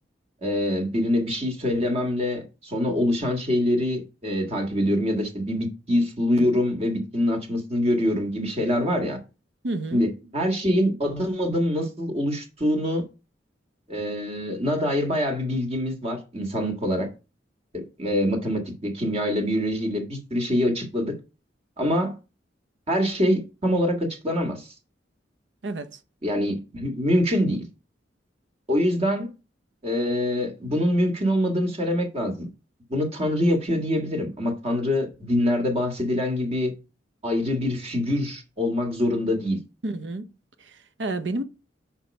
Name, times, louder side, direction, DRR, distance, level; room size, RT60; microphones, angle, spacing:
voice 1, 0.4-9.2 9.9-13.0 13.9-17.1 17.7-21.1 21.8-22.1 22.9-24.7 26.2-27.6 28.7-29.3 29.8-32.5 32.9-36.7 37.2-39.6, left 1 dB, 35° right, 1.7 m, -25 dB
voice 2, 9.6-10.1 25.6-26.0 39.8-40.3 40.6-41.4, right 2 dB, 80° right, 0.8 m, -30 dB
6.1 x 4.5 x 5.2 m
head